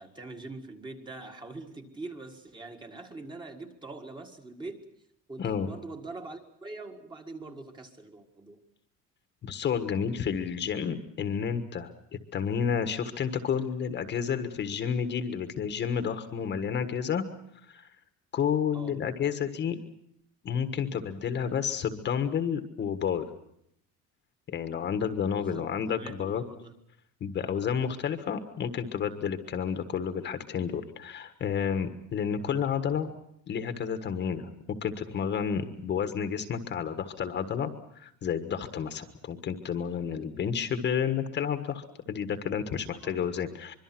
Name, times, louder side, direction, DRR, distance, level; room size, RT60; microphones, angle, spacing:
voice 1, 0.0-4.9 5.3-8.6 18.7-19.0 25.4-25.7 26.0-26.7 43.0-43.2, right 3 dB, 15° right, 4 dB, 1.8 m, -43 dB
voice 2, 9.4-11.9 12.3-17.2 17.7-17.9 18.3-19.8 20.4-23.3 24.5-26.4 27.2-33.1 33.5-34.5 34.8-43.7, left 7 dB, 30° left, 9 dB, 1.5 m, -30 dB
25.0 x 23.0 x 6.1 m, 0.73 s
cardioid pair, 180°, 34 cm